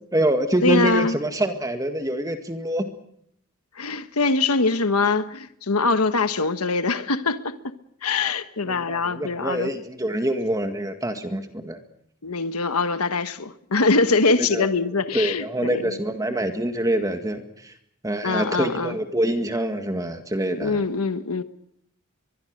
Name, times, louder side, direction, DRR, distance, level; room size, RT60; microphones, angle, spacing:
voice 1, 0.1-2.9 8.7-11.8 14.4-14.7 15.1-17.7 18.0-20.8, right 1 dB, 15° right, 1.9 m, -25 dB
voice 2, 0.6-1.2 3.7-7.6 8.0-9.7 12.2-15.9 18.2-19.0 20.6-21.4, left 3 dB, 85° left, 1.3 m, -23 dB
23.5 x 21.5 x 6.6 m
head